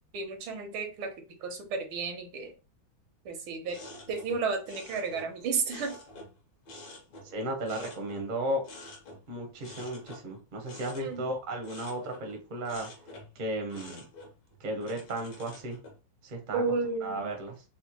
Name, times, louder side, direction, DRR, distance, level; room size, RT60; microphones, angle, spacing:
voice 1, 0.1-1.1 1.4-2.5 3.2-3.8 4.1-5.9 11.0-11.3 16.5-17.3, right 4 dB, 85° right, 4 dB, 1.6 m, -32 dB
sound 1, 3.7-6.4 6.7-8.4 8.6-9.2 9.6-12.4 12.7-13.4 13.7-16.0, left 1 dB, 60° left, 1.6 m, -48 dB
voice 2, 7.3-8.6 9.3-12.9 13.3-14.0 14.6-15.8 16.2-16.6 17.0-17.6, right 1 dB, 55° right, 2 dB, 0.5 m, -34 dB
4.2 x 2.2 x 2.9 m, 0.32 s
omnidirectional pair, 2.2 m